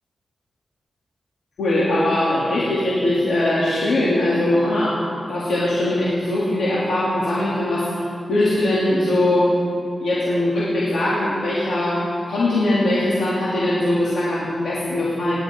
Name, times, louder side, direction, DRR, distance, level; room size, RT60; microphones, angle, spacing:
voice 1, 1.6-9.6 10.0-15.4, left 1 dB, 90° left, -9 dB, 3.1 m, -21 dB
27.5 x 11.0 x 3.9 m, 2.5 s
wide cardioid pair, 80°, 0 cm